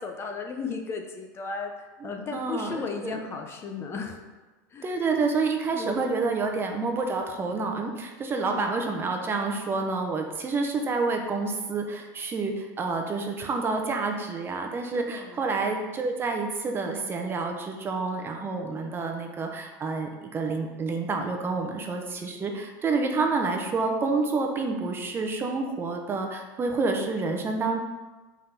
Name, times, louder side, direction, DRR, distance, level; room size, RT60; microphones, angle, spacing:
voice 1, 0.0-4.2 4.7-4.9 5.7-6.1 8.4-8.8 14.9-15.4, left 5 dB, 25° left, 4 dB, 0.7 m, -35 dB
voice 2, 2.3-3.1 4.8-27.8, right 3 dB, 25° right, 3 dB, 0.8 m, -28 dB
5.4 x 3.8 x 5.9 m, 1.2 s
supercardioid pair, 125°, 10 cm